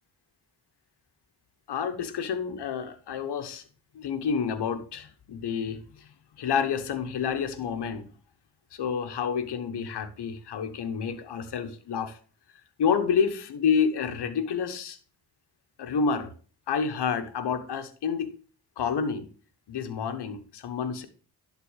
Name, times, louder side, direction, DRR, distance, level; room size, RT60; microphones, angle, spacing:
voice 1, 1.7-3.6 3.9-6.1 6.4-8.1 8.7-12.2 12.8-15.0 15.8-16.3 16.7-18.3 18.8-19.3 19.7-21.1, left 6 dB, 90° left, 9 dB, 1.1 m, -29 dB
11.0 x 4.0 x 6.3 m, 0.39 s
cardioid pair, 50°, 39 cm